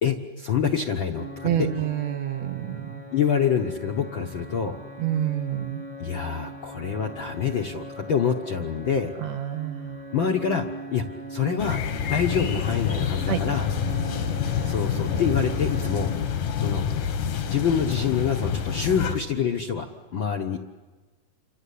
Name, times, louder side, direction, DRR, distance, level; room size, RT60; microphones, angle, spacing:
voice 1, 0.0-1.7 3.1-4.8 6.0-9.1 10.1-13.7 14.7-16.1 16.5-16.8 17.5-20.6, left 7 dB, 55° left, 3 dB, 1.4 m, -26 dB
sound 1, 1.1-16.2, right 1 dB, 5° right, 1.0 m, -40 dB
voice 2, 1.4-3.0 5.0-5.8 9.2-10.0 13.3-13.4, right 11 dB, 65° right, 7 dB, 2.2 m, -28 dB
sound 2, 11.6-19.2, left 7 dB, 80° left, 3.1 m, -27 dB
28.5 x 24.5 x 8.4 m, 1.3 s
omnidirectional pair, 3.6 m